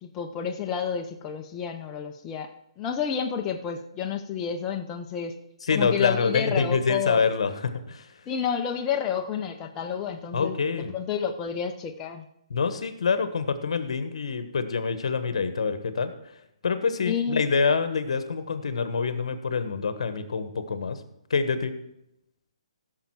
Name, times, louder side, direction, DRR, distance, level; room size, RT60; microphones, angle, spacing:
voice 1, 0.0-2.5 2.8-5.3 5.7-7.2 8.3-12.3 17.0-17.4, left 7 dB, 20° left, 4 dB, 0.7 m, -30 dB
voice 2, 5.7-8.1 10.3-10.9 12.5-16.1 16.6-21.0 21.3-21.7, left 5 dB, 70° left, 10 dB, 1.3 m, -26 dB
16.0 x 6.5 x 4.8 m, 0.82 s
hypercardioid pair, 155°, 3 cm